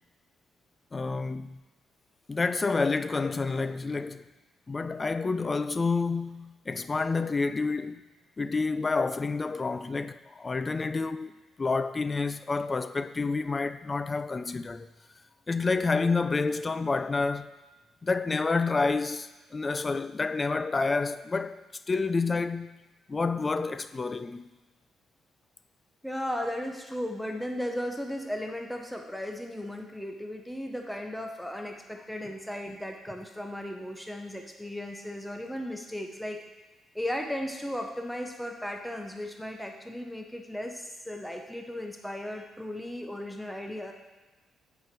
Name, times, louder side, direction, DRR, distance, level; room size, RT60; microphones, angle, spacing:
voice 1, 0.9-1.6 2.3-4.2 4.7-8.0 8.4-11.3 11.6-14.9 15.5-17.5 18.0-22.8 23.1-24.6, left 4 dB, 25° left, 0.3 m, -29 dB
voice 2, 26.0-36.4 36.9-43.9, left 1 dB, 5° left, 0.8 m, -36 dB
7.8 x 5.1 x 4.5 m
cardioid pair, 90°, 0 cm